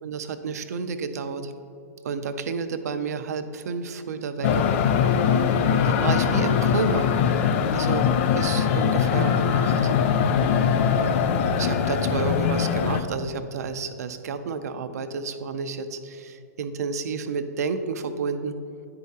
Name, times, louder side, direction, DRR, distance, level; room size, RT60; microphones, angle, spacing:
voice 1, 0.0-1.5 2.0-4.7 5.8-7.4 7.7-8.1 8.3-9.9 10.9-11.2 11.6-18.5, right 5 dB, 70° right, 10 dB, 0.5 m, -30 dB
sound 1, 4.4-13.0, left 7 dB, 45° left, 0.4 m, -22 dB
9.6 x 4.6 x 2.8 m, 2.7 s
hypercardioid pair, 125°, 9 cm